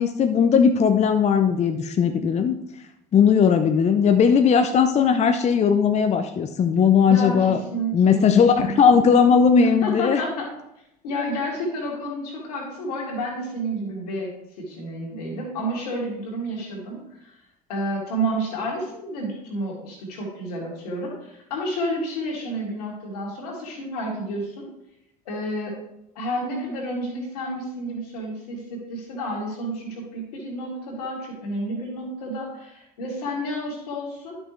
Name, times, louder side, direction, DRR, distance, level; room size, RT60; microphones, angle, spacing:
voice 1, 0.0-2.6 3.1-7.6 7.9-10.2, left 6 dB, 35° left, 7 dB, 0.7 m, -18 dB
voice 2, 7.1-8.8 9.6-10.5 11.0-14.3 14.6-17.4 17.7-24.7 25.3-25.8 26.1-34.4, right 1 dB, 80° left, -2 dB, 2.7 m, -30 dB
11.0 x 6.2 x 3.2 m, 0.82 s
hypercardioid pair, 65°, 19 cm